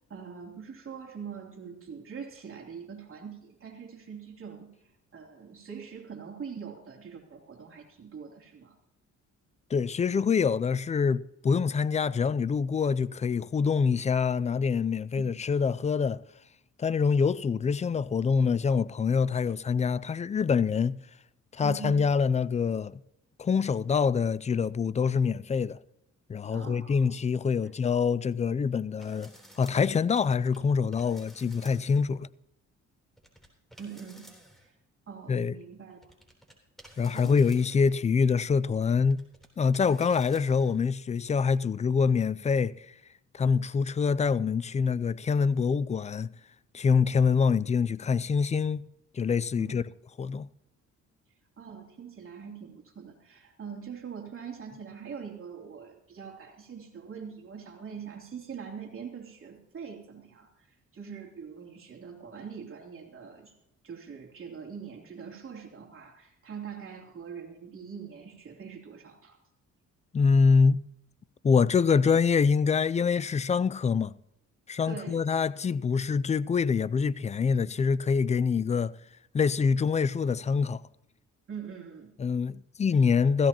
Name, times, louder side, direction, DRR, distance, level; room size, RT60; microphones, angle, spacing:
voice 1, 0.0-4.7 5.1-8.7 15.2-15.3 21.6-22.1 26.5-27.1 33.8-34.3 35.1-36.1 37.1-37.4 49.6-49.9 51.6-60.5 60.9-63.5 63.8-69.4 74.9-75.3 81.5-82.1, right 6 dB, 45° right, 3.1 m, -43 dB
voice 2, 9.7-16.2 16.8-21.0 21.5-23.0 23.4-25.8 26.3-29.3 29.6-32.3 35.3-35.5 37.0-39.2 39.6-42.9 43.3-46.3 46.7-48.8 49.1-49.8 50.2-50.5 70.1-70.8 71.4-74.1 74.7-78.9 79.3-80.8 82.2-83.5, left 5 dB, 25° left, 0.4 m, -25 dB
sound 1, 29.0-30.6 30.9-32.1 33.2-34.7 35.7-35.8 36.0-37.9 38.7-39.5 39.7-40.8, equal, ahead, 3.5 m, -54 dB
15.5 x 15.5 x 2.9 m
cardioid pair, 90°, 30 cm